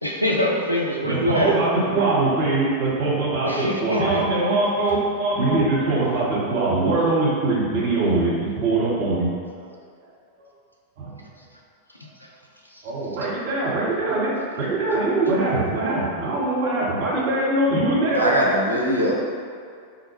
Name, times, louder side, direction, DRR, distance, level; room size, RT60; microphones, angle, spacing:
voice 1, 0.0-1.5 3.4-4.2, left 1 dB, 85° left, -1 dB, 0.4 m, -23 dB
voice 2, 1.0-8.3 8.6-9.3 11.0-11.1 12.8-14.3 14.6-18.2, right 2 dB, 50° right, -6 dB, 1.0 m, -22 dB
voice 3, 18.1-19.2, equal, 85° right, -3 dB, 0.5 m, -21 dB
4.0 x 2.2 x 3.1 m, 2.2 s
figure-of-eight pair, 90°, 0 cm